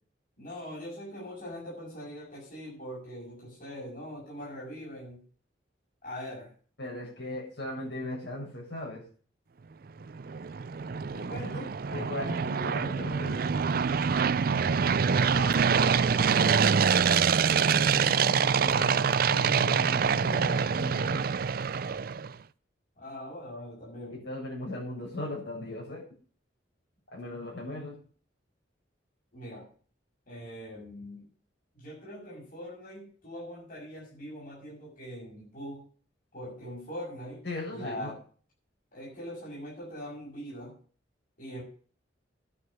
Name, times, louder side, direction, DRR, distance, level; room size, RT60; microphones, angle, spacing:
voice 1, 0.4-5.2 6.0-6.5 11.1-11.7 15.3-16.6 23.0-24.2 29.3-29.7 30.3-31.3 31.7-35.9 36.3-37.4 37.7-38.2 38.9-40.8 41.4-41.6, equal, 50° left, -5 dB, 6.6 m, -42 dB
voice 2, 6.8-9.0 11.9-13.5 17.4-21.2 24.2-26.0 27.1-28.0 37.4-38.1, left 1 dB, 65° left, -4 dB, 7.6 m, -38 dB
sound 1, 10.0-22.3, right 6 dB, 50° right, 0.4 m, -25 dB
11.0 x 6.5 x 9.0 m, 0.42 s
head